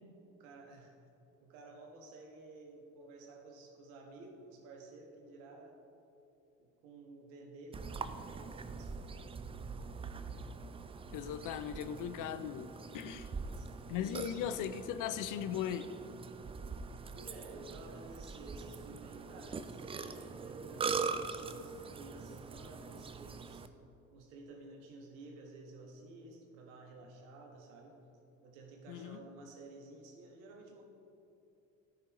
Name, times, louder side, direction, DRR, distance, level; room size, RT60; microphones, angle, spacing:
voice 1, 0.4-0.9 1.4-5.8 6.6-10.0 13.2-14.4 17.1-23.7 24.1-28.0 28.4-30.8, right 2 dB, 75° right, 1 dB, 1.5 m, -53 dB
Burping eructation, 7.7-23.7, right 5 dB, 15° right, 0.3 m, -43 dB
voice 2, 11.1-13.3 13.9-15.9 28.9-29.2, left 9 dB, 50° left, 12 dB, 0.6 m, -38 dB
14.0 x 5.6 x 3.1 m, 2.9 s
hypercardioid pair, 60°, 40 cm